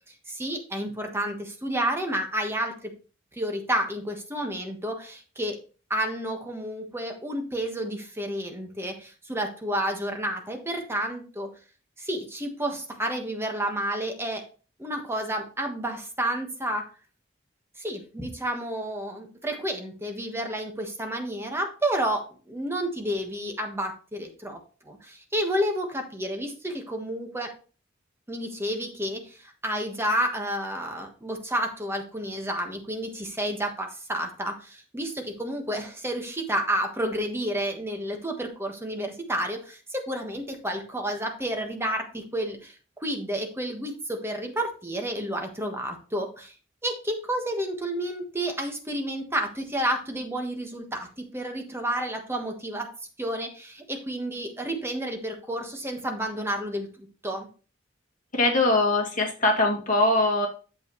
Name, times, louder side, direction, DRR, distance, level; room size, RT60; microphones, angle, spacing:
voice 1, 0.3-2.9 3.3-5.6 5.9-11.5 12.0-14.4 14.8-16.8 17.8-24.6 24.8-27.5 28.3-42.7 43.0-46.5 46.8-52.9 53.2-57.5, right 1 dB, 15° right, 3 dB, 1.4 m, -30 dB
voice 2, 58.3-60.5, left 2 dB, 40° left, -1 dB, 2.3 m, -22 dB
8.3 x 7.4 x 3.1 m, 0.36 s
head